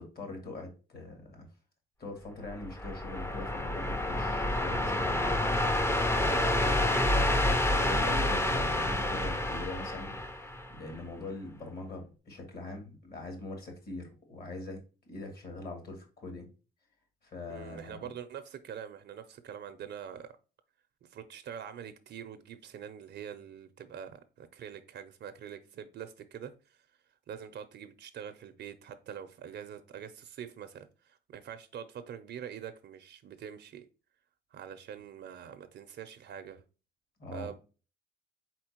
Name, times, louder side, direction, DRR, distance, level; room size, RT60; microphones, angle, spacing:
voice 1, 0.0-1.5 2.0-6.7 7.7-10.2 10.7-16.5 17.2-18.1 37.2-37.5, left 2 dB, 50° left, 2.1 m, -42 dB
sound 1, 2.5-11.0, left 1 dB, 10° left, 0.5 m, -28 dB
voice 2, 6.2-7.0 17.5-20.3 21.0-26.8 27.3-33.8 34.5-36.6 37.3-37.6, right 8 dB, 60° right, 0.6 m, -44 dB
4.3 x 4.2 x 2.9 m
cardioid pair, 90°, 20 cm